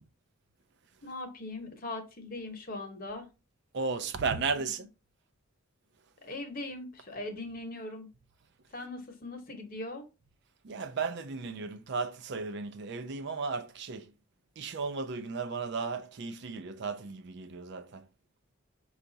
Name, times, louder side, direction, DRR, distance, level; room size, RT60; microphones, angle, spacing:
voice 1, 1.0-3.3 4.6-4.7 6.2-8.1 8.7-10.0, left 2 dB, 45° left, 0.9 m, -40 dB
voice 2, 3.7-4.9 10.6-14.1 14.6-18.0, right 4 dB, 55° right, 0.4 m, -35 dB
5.6 x 2.4 x 3.8 m
head